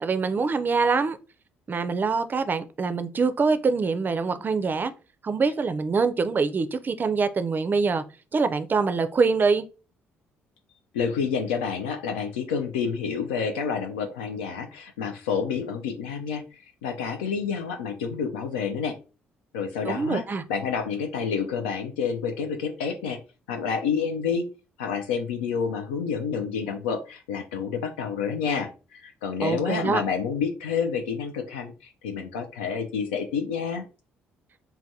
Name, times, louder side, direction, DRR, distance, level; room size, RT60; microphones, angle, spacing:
voice 1, 0.0-1.2 1.7-4.9 5.2-8.0 8.3-9.6 19.8-20.4 29.4-30.0, right 4 dB, 35° right, 0.4 m, -24 dB
voice 2, 10.9-19.0 19.5-23.2 23.5-24.5 24.8-33.8, left 6 dB, 85° left, 0.3 m, -29 dB
3.3 x 2.1 x 2.6 m
hypercardioid pair, 50°, 6 cm